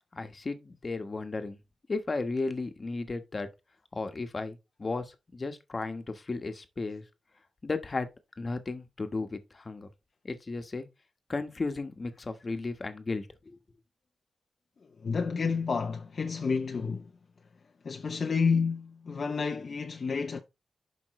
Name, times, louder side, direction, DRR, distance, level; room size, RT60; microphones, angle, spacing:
voice 1, 0.1-1.6 1.9-3.5 3.9-7.0 7.6-8.1 8.4-9.9 10.2-10.9 11.3-13.6, left 3 dB, 35° left, 1.2 m, -34 dB
voice 2, 15.0-17.1 17.8-20.4, left 5 dB, 50° left, 0.7 m, -30 dB
11.5 x 5.2 x 3.2 m
wide cardioid pair, 120°, 0 cm